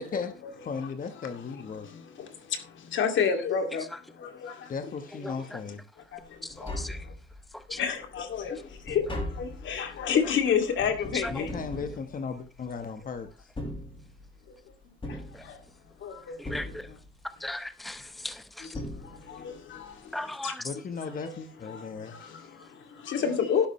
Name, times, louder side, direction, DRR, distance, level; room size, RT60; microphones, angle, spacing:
voice 1, 0.0-0.3 0.6-1.9 4.7-5.8 11.3-13.5 20.6-22.2, left 5 dB, 45° left, 1.2 m, -36 dB
voice 2, 1.8-4.7 6.1-7.1 7.7-11.5 14.5-14.6 15.1-15.6 16.0-17.0 18.6-20.5 21.2-21.3 21.7-23.7, left 7 dB, 70° left, 2.5 m, -31 dB
Tap, 6.2-6.3 6.5-7.6 8.0-12.8 13.4-14.5 15.0-16.0 16.4-17.3 18.3-18.4 18.7-19.6 19.8-19.9, left 1 dB, 25° left, 5.9 m, -39 dB
voice 3, 6.4-7.0 7.7-7.8 11.2-11.3 15.1-15.2 16.4-16.9 17.4-18.7 20.1-20.6, left 1 dB, ahead, 0.8 m, -37 dB
11.5 x 11.0 x 3.2 m
cardioid pair, 90°, 20 cm